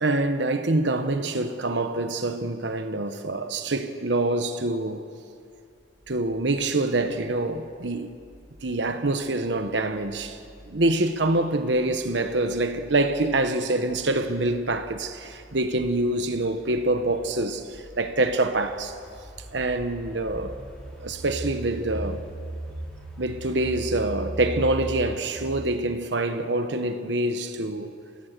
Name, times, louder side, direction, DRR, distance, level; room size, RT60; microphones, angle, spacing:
voice 1, 0.0-5.0 6.1-8.2 8.6-10.4 10.7-18.9 19.5-20.6 21.0-22.2 23.2-27.9, right 2 dB, 65° right, 1.1 m, -25 dB
sound 1, 6.0-25.2, right 1 dB, 5° left, 5.4 m, -40 dB
28.5 x 16.0 x 6.8 m
head